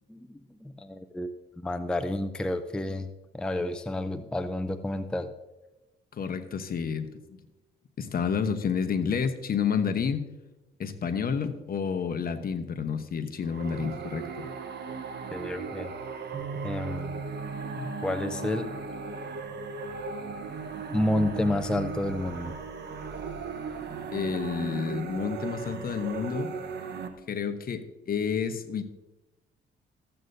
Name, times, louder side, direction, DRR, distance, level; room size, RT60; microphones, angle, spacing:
voice 1, 0.1-5.3 15.3-15.9 16.6-17.2 17.8-18.7 20.9-22.6, left 1 dB, 5° left, 8 dB, 0.5 m, -30 dB
voice 2, 6.1-7.4 8.0-10.2 10.8-14.5 24.1-26.5 27.3-28.8, left 6 dB, 50° left, 8 dB, 1.0 m, -30 dB
sound 1, 13.4-27.1, right 5 dB, 60° right, 1.1 m, -37 dB
Bass guitar, 16.3-20.7 21.4-22.6, right 4 dB, 75° right, 2.6 m, -42 dB
14.5 x 7.8 x 2.7 m, 1.0 s
cardioid pair, 90°, 20 cm